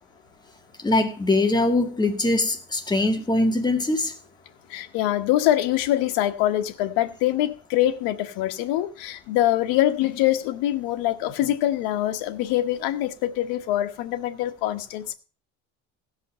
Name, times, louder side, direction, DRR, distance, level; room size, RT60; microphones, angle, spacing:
voice 1, 0.8-4.1, left 2 dB, 10° left, 1.6 m, -22 dB
voice 2, 4.7-15.1, left 13 dB, 80° left, 1.2 m, -24 dB
17.0 x 5.6 x 5.5 m
cardioid pair, 120°, 35 cm